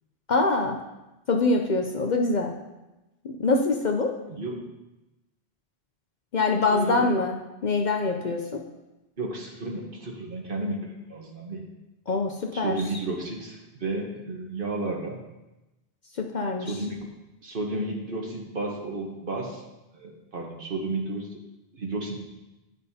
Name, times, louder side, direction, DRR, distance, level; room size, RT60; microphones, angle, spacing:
voice 1, 0.3-0.8 1.3-2.5 3.4-4.1 6.3-8.6 12.1-12.8 16.3-16.7, left 3 dB, 50° left, 2 dB, 0.6 m, -24 dB
voice 2, 6.7-7.1 9.2-11.6 12.5-15.2 16.6-17.1 17.4-19.6 19.9-21.4 21.7-22.3, right 2 dB, 55° right, -1 dB, 1.3 m, -32 dB
10.5 x 5.3 x 2.8 m, 1.0 s
omnidirectional pair, 1.1 m